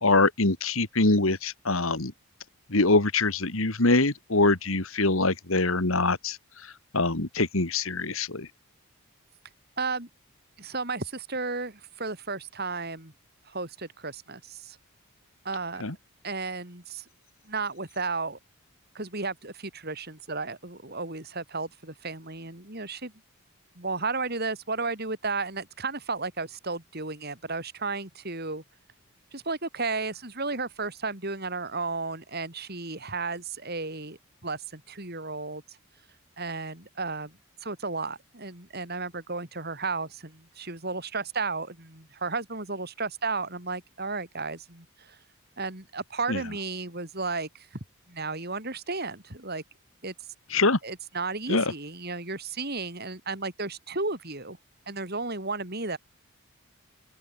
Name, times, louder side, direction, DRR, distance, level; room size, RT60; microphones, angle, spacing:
voice 1, 0.0-2.1 2.7-6.4 6.9-8.5 15.8-15.9 46.3-46.4 50.5-50.8 51.5-51.6, left 2 dB, 70° left, 2.3 m, -24 dB
voice 2, 9.8-10.1 10.6-13.1 13.4-14.8 15.4-15.9 16.2-17.0 17.5-18.4 18.9-23.1 23.8-28.6 29.3-35.6 36.4-45.2 45.6-47.7 48.1-49.6 50.0-50.1 50.8-54.6 54.9-56.0, right 3 dB, 45° right, 4.6 m, -33 dB
open air
head